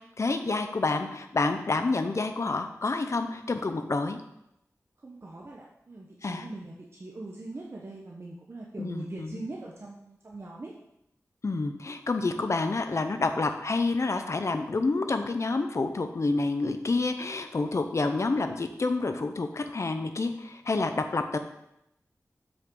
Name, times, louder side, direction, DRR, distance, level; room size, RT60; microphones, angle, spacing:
voice 1, 0.2-4.2 6.2-6.4 8.8-9.4 11.4-21.4, left 3 dB, 55° left, 7 dB, 0.7 m, -28 dB
voice 2, 5.0-10.7, right 2 dB, 45° right, -3 dB, 1.0 m, -41 dB
7.7 x 6.3 x 3.9 m, 0.82 s
wide cardioid pair, 80°, 6 cm